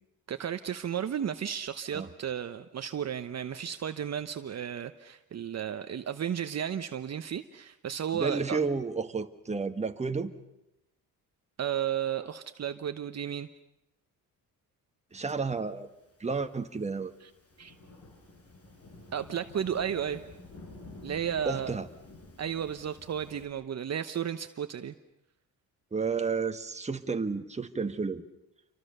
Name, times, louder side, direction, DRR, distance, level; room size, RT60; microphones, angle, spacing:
voice 1, 0.3-8.6 11.6-13.5 17.6-17.7 19.1-20.2 21.0-21.7 22.4-24.9, right 9 dB, 45° right, 9 dB, 1.0 m, -33 dB
voice 2, 8.1-10.3 15.1-15.9 16.2-17.1 21.4-21.9 25.9-28.2, right 4 dB, 20° right, 7 dB, 1.4 m, -31 dB
Thunderstorm / Rain, 15.8-23.5, left 2 dB, 40° left, 5.4 m, -51 dB
28.5 x 24.5 x 6.8 m, 0.89 s
cardioid pair, 125°, 36 cm